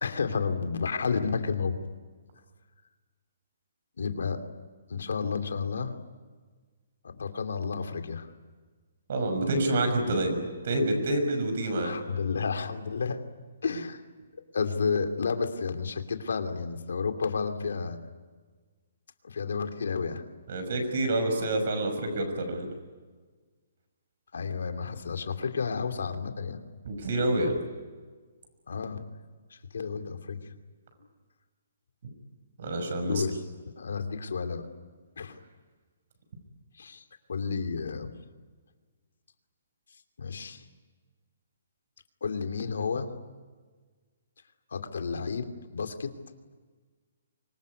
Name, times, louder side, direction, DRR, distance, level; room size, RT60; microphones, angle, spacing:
voice 1, 0.0-1.8 4.0-4.4 4.9-6.0 7.0-8.3 11.8-13.2 13.6-14.0 14.5-18.0 19.2-20.2 24.3-26.6 28.7-29.0 29.5-30.5 33.0-34.6 35.2-35.4 36.8-37.0 37.3-38.1 40.2-40.6 42.2-43.1 44.7-46.1, left 5 dB, 75° left, 7 dB, 2.7 m, -31 dB
voice 2, 9.1-11.9 20.5-22.7 26.8-27.6 32.6-33.2, right 1 dB, 45° right, 6 dB, 6.0 m, -27 dB
25.0 x 22.0 x 9.6 m, 1.4 s
hypercardioid pair, 175°, 0 cm